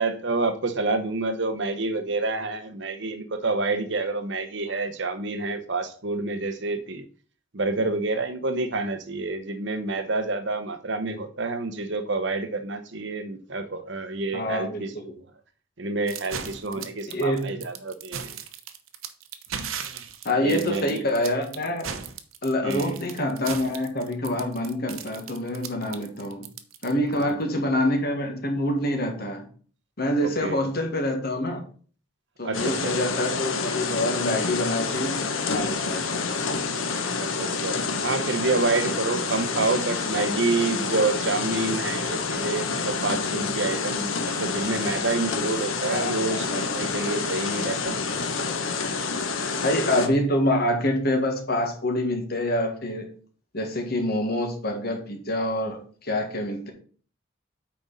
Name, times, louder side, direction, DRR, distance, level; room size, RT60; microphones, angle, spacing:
voice 1, 0.0-7.1 7.5-14.9 15.8-18.4 19.9-20.0 20.4-21.0 22.6-23.0 27.1-27.6 30.2-30.6 32.4-33.0 37.2-48.0 49.3-49.5, right 3 dB, 60° right, 9 dB, 1.0 m, -28 dB
voice 2, 14.3-15.2 16.8-17.4 20.3-21.9 22.4-26.5 26.8-29.4 30.0-31.6 32.4-35.2 35.5-36.1 45.9-46.4 49.6-53.1 53.5-56.7, left 1 dB, 50° left, 3 dB, 1.8 m, -26 dB
sound 1, 16.1-27.3, right 7 dB, 85° right, 0.9 m, -37 dB
Rainy night, 32.5-50.1, left 4 dB, 80° left, 1.2 m, -28 dB
8.7 x 5.3 x 4.2 m, 0.42 s
head